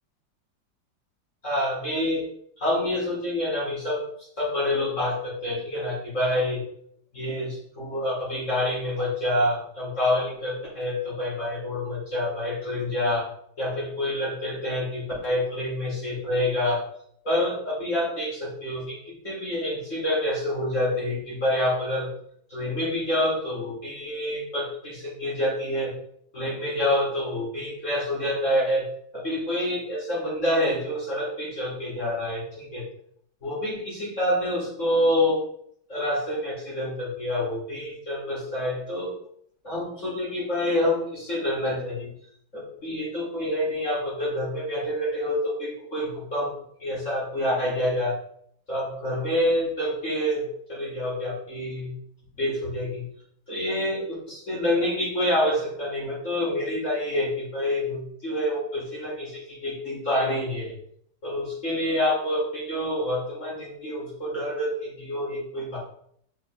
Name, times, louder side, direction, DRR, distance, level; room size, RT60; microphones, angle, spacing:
voice 1, 1.4-2.2 2.6-6.6 7.1-13.2 13.6-16.8 17.2-22.1 22.5-25.9 26.3-28.8 29.1-32.8 33.4-35.4 35.9-39.1 39.6-42.1 42.5-46.5 46.8-48.2 48.7-51.9 52.3-53.0 53.5-60.7 61.2-65.8, left 1 dB, 35° left, -7 dB, 4.8 m, -27 dB
9.2 x 6.5 x 4.1 m, 0.67 s
omnidirectional pair, 2.3 m